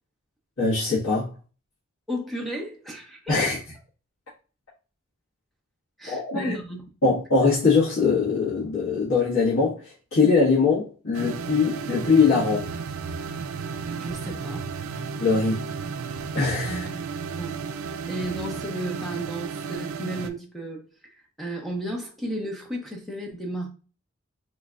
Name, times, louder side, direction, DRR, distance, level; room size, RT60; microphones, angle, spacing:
voice 1, 0.6-1.3 3.3-3.6 6.1-6.5 7.0-9.8 10.1-12.7 15.2-15.6 16.3-16.8, left 4 dB, 85° left, 1.6 m, -22 dB
voice 2, 2.1-3.4 6.0-6.8 14.0-14.7 16.7-16.9 17.4-17.6 18.1-20.8 21.4-23.7, right 1 dB, ahead, 0.7 m, -33 dB
sound 1, 11.1-20.3, right 5 dB, 80° right, 0.4 m, -33 dB
4.0 x 3.1 x 2.4 m
head